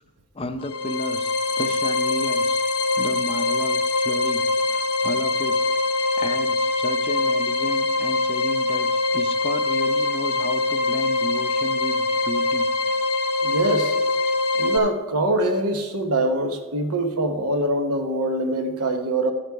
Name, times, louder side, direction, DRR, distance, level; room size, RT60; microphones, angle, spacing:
voice 1, 0.3-2.6 3.0-5.6 5.9-12.7, left 1 dB, 25° left, 9 dB, 0.5 m, -33 dB
sound 1, 0.6-14.8, left 2 dB, 75° left, 0.6 m, -23 dB
voice 2, 13.4-14.0 14.5-19.3, right 1 dB, 85° right, 6 dB, 1.0 m, -24 dB
11.5 x 6.7 x 4.7 m, 1.2 s
head